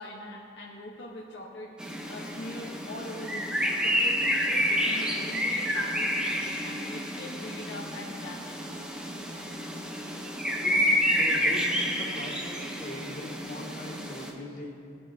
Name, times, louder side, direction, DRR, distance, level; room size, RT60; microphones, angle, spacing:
voice 1, 0.0-1.7 2.1-8.8, left 1 dB, 60° left, -4 dB, 1.3 m, -42 dB
sound 1, 1.8-14.3, equal, 5° right, 1.0 m, -29 dB
voice 2, 11.2-14.8, left 1 dB, 40° left, -5 dB, 2.3 m, -40 dB
21.0 x 8.9 x 2.9 m, 2.5 s
head